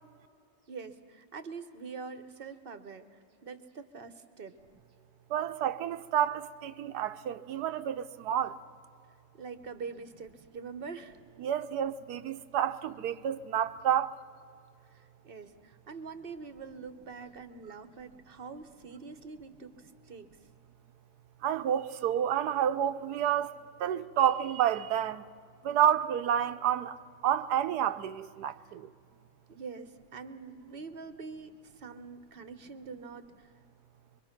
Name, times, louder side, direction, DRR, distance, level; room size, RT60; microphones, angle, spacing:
voice 1, 0.7-4.6 9.4-11.2 14.9-20.3 29.5-33.5, right 5 dB, 40° right, 1.0 m, -44 dB
voice 2, 5.3-8.6 11.4-14.2 21.4-23.5 23.8-25.2 25.6-27.0 27.2-28.9, right 10 dB, 75° right, 1.2 m, -29 dB
25.0 x 22.5 x 5.9 m
omnidirectional pair, 1.7 m